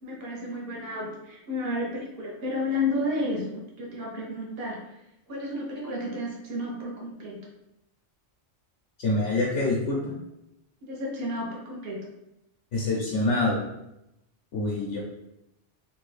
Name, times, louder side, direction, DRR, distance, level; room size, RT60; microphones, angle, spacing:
voice 1, 0.0-4.9 5.3-7.4 10.8-12.0, left 1 dB, 55° right, -2 dB, 1.1 m, -32 dB
voice 2, 9.0-10.0 12.7-13.6 14.5-15.0, left 2 dB, 75° left, -4 dB, 1.0 m, -25 dB
3.0 x 2.7 x 3.2 m, 0.86 s
omnidirectional pair, 1.2 m